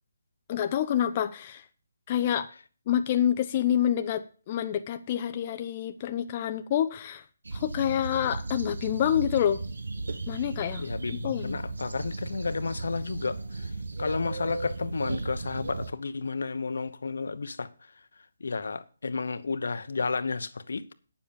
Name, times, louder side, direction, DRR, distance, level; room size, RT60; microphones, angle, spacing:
voice 1, 0.5-1.6 2.1-2.5 2.9-7.2 7.5-9.6 10.3-10.9 11.2-11.6, left 10 dB, 25° left, 0.6 m, -27 dB
sound 1, 7.4-15.9, right 3 dB, 90° right, 1.4 m, -36 dB
voice 2, 10.8-13.4 14.0-17.7 18.4-20.9, left 4 dB, 75° left, 1.0 m, -32 dB
9.4 x 7.3 x 7.2 m
hypercardioid pair, 170°, 0 cm